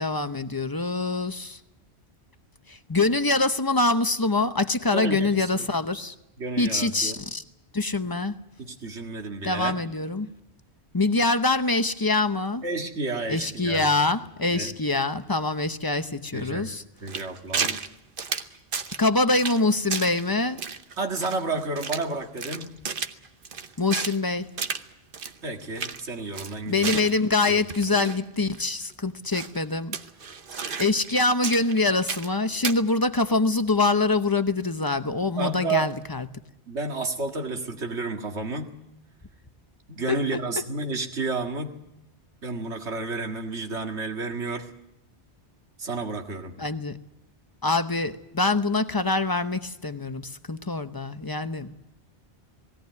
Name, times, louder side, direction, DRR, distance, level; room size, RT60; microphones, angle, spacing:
voice 1, 0.0-1.6 2.7-6.1 6.6-7.4 7.7-8.4 9.4-10.3 10.9-12.6 13.3-16.8 19.0-20.6 23.8-24.5 26.7-29.9 30.8-36.2 40.1-40.4 46.6-47.0 47.6-51.7, left 3 dB, 20° left, 10 dB, 0.8 m, -24 dB
voice 2, 4.9-5.7 6.4-7.2 8.6-9.7 12.6-13.9 14.5-14.7 16.3-17.8 21.0-22.7 25.4-27.0 27.5-27.6 35.4-35.9 36.7-38.7 39.9-41.8 42.4-44.7 45.8-46.5, right 3 dB, 85° right, 4 dB, 2.2 m, -31 dB
sound 1, 17.1-17.9 18.2-19.1 19.4-19.6 19.9-20.2 20.6-22.1 22.4-24.2 24.6-24.8 25.1-25.3 25.6-26.0 26.3-28.2 28.5-28.6 29.3-29.6 29.9-31.1 31.4-32.3 32.6-32.8, right 5 dB, 55° right, 1.1 m, -32 dB
19.0 x 17.5 x 9.5 m, 0.87 s
omnidirectional pair, 1.1 m